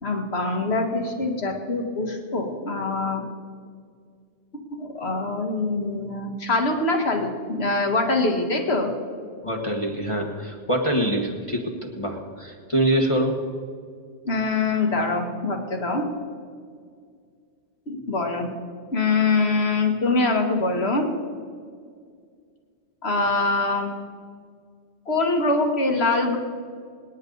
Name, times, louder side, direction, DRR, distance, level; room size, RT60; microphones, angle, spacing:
voice 1, 0.0-3.2 4.7-8.9 14.2-16.1 17.9-18.5 18.9-21.1 23.0-23.9 25.1-26.4, left 3 dB, 60° left, 3 dB, 2.1 m, -24 dB
voice 2, 9.4-13.3, right 1 dB, 25° left, 0 dB, 1.5 m, -25 dB
26.0 x 10.0 x 4.0 m, 2.1 s
omnidirectional pair, 1.2 m